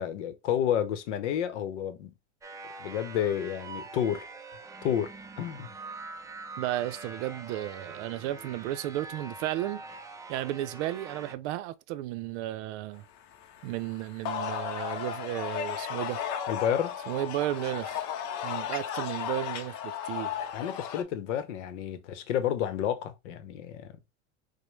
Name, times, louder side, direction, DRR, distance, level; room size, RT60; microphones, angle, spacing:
voice 1, 0.0-2.1 2.8-4.3 4.8-5.7 16.5-17.0 20.5-24.0, left 9 dB, 85° left, 0.8 m, -30 dB
sound 1, 2.4-11.3, right 3 dB, 10° right, 0.3 m, -44 dB
voice 2, 6.6-9.8 10.3-13.1 13.6-16.2 17.1-18.0 18.4-20.5, right 14 dB, 75° right, 0.5 m, -33 dB
sound 2, 13.3-21.0, left 9 dB, 55° left, 0.7 m, -35 dB
5.0 x 2.1 x 3.1 m
supercardioid pair, 105°, 35 cm